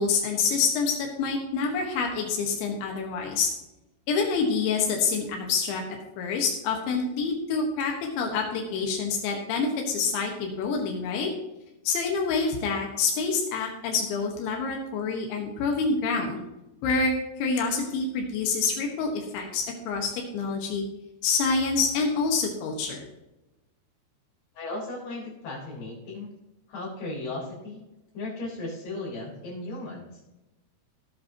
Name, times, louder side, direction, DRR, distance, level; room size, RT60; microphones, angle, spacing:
voice 1, 0.0-3.5 4.1-5.8 6.2-11.3 11.9-16.4 16.8-20.8 21.2-23.1, left 4 dB, 85° left, 1 dB, 3.9 m, -27 dB
voice 2, 24.5-26.3 26.7-27.8 28.1-30.2, left 2 dB, 65° left, -9 dB, 6.2 m, -36 dB
18.0 x 8.5 x 3.0 m, 0.97 s
omnidirectional pair, 5.1 m